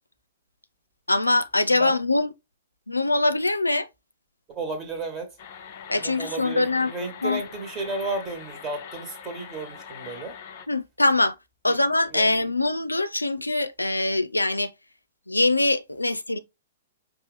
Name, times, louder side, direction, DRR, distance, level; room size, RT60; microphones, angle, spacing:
voice 1, 1.1-2.3 2.9-3.9 5.9-6.9 7.2-7.4 10.7-11.3 11.6-14.7 15.3-16.4, left 2 dB, 85° left, 0.4 m, -23 dB
voice 2, 4.5-5.3 5.9-10.4 11.7-11.8 12.1-12.3, right 2 dB, 20° right, 1.4 m, -33 dB
sound 1, 5.4-10.7, left 7 dB, 45° left, 0.7 m, -43 dB
5.3 x 2.4 x 3.3 m
figure-of-eight pair, 110°, 0 cm